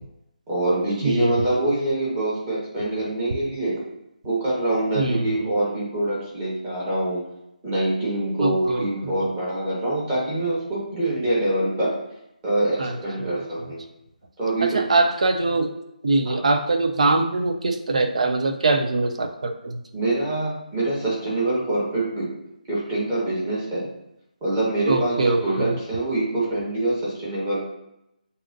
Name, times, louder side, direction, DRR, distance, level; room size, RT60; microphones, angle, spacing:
voice 1, 0.5-3.8 4.2-7.2 7.6-11.9 12.4-13.8 14.4-14.8 16.2-16.4 19.9-22.3 22.7-23.9 24.4-27.6, right 1 dB, 20° right, -7 dB, 1.6 m, -25 dB
voice 2, 1.0-1.5 4.9-5.5 8.4-9.1 12.8-13.3 14.6-15.7 16.0-19.8 24.9-25.8, right 3 dB, 50° right, 5 dB, 0.7 m, -23 dB
7.1 x 2.7 x 2.7 m, 0.85 s
figure-of-eight pair, 150°, 5 cm